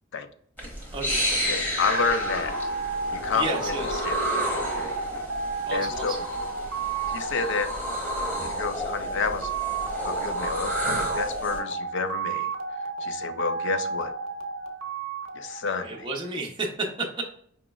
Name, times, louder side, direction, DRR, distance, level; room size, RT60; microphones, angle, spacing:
sound 1, 0.6-11.6, equal, 10° left, 1.1 m, -31 dB
voice 1, 1.5-2.5 3.1-3.7 4.0-4.2 4.6-4.9 5.7-6.1 7.1-7.7 8.4-9.5 10.0-12.5 13.0-14.1 15.3-16.1, left 5 dB, 60° left, 10 dB, 0.4 m, -29 dB
sound 2, 1.8-16.3, right 4 dB, 70° right, 0.7 m, -32 dB
voice 2, 3.3-4.0 5.7-6.2 15.8-17.2, right 2 dB, 25° right, -1 dB, 0.6 m, -32 dB
4.8 x 3.0 x 2.3 m, 0.65 s
head